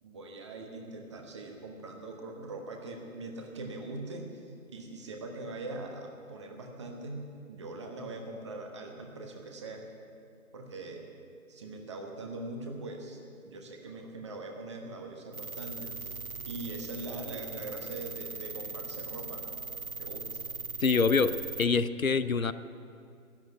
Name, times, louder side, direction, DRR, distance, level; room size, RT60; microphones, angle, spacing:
voice 1, 0.0-9.8 10.5-11.1 11.5-16.2 16.5-19.5 20.0-20.4, right 2 dB, 20° right, 2 dB, 1.3 m, -42 dB
sound 1, 15.3-21.6, right 4 dB, 85° right, 1.1 m, -40 dB
voice 2, 20.8-22.5, left 5 dB, 75° left, 14 dB, 0.8 m, -26 dB
13.5 x 11.0 x 9.2 m, 2.4 s
figure-of-eight pair, 145°, 41 cm